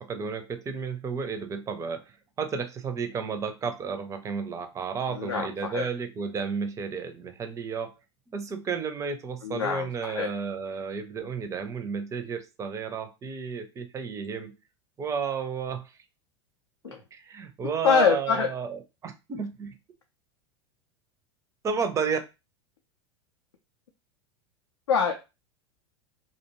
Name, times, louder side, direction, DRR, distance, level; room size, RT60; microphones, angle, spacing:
voice 1, 0.0-7.9 8.3-14.6 15.0-16.0 16.8-19.8 21.6-22.2, right 5 dB, 20° right, 8 dB, 0.5 m, -32 dB
voice 2, 5.1-5.9 9.4-10.3 16.8-17.0 17.8-18.5 24.9-25.1, left 6 dB, 75° left, 2 dB, 0.5 m, -25 dB
2.4 x 2.2 x 2.9 m, 0.26 s
figure-of-eight pair, 85°, 15 cm